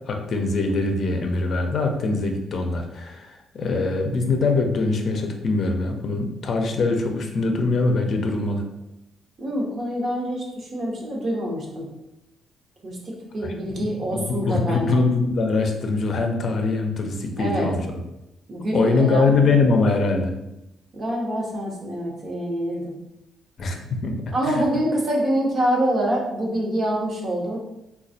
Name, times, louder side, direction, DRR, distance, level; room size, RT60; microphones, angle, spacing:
voice 1, 0.1-8.6 13.4-17.8 18.7-20.3 23.6-23.8 24.0-24.6, left 3 dB, 55° left, 4 dB, 0.5 m, -23 dB
voice 2, 9.4-11.9 12.8-15.0 17.4-17.7 18.5-19.2 20.9-22.9 24.3-27.6, right 1 dB, 45° right, -2 dB, 1.0 m, -25 dB
4.0 x 2.3 x 2.6 m, 0.90 s
cardioid pair, 90°, 0 cm